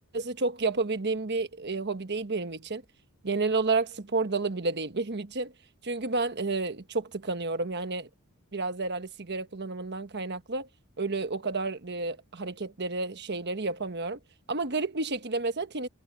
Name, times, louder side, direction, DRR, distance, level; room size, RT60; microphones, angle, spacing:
voice 1, 0.1-2.8 3.2-5.5 5.8-8.1 8.5-10.7 11.0-14.2 14.5-15.9, right 3 dB, 50° right, 1.2 m, -30 dB
head